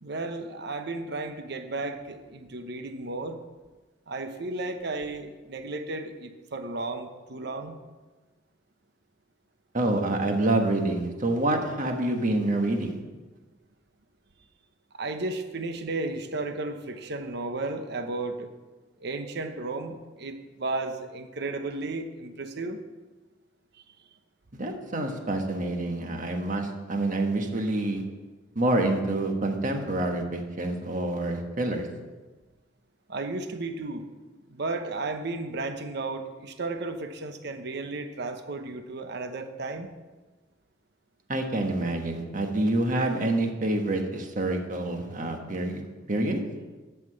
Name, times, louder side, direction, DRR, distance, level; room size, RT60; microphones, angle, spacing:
voice 1, 0.0-3.4 4.1-7.8 14.9-18.5 19.0-22.8 23.7-23.8 33.1-34.1 34.5-39.9, right 2 dB, 60° right, 7 dB, 0.9 m, -34 dB
voice 2, 9.7-12.9 24.5-28.0 28.5-31.9 41.3-45.8 46.1-46.4, right 2 dB, 45° right, 4 dB, 1.4 m, -27 dB
11.0 x 5.9 x 7.8 m, 1.3 s
head